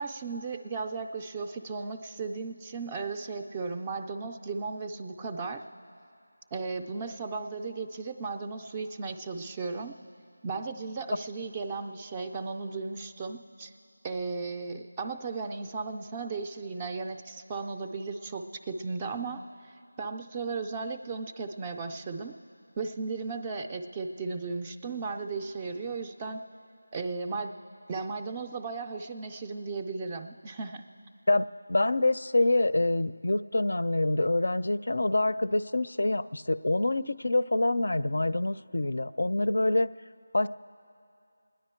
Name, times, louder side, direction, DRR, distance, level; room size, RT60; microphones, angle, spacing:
voice 1, 0.0-5.6 6.5-9.9 10.4-13.7 14.0-19.7 20.0-22.3 22.8-26.4 26.9-27.5 27.9-30.8, right 4 dB, 10° right, 5 dB, 0.3 m, -35 dB
voice 2, 31.3-39.9 40.3-40.5, left 2 dB, 60° left, 15 dB, 0.4 m, -26 dB
28.0 x 10.0 x 4.4 m, 2.5 s
figure-of-eight pair, 180°, 0 cm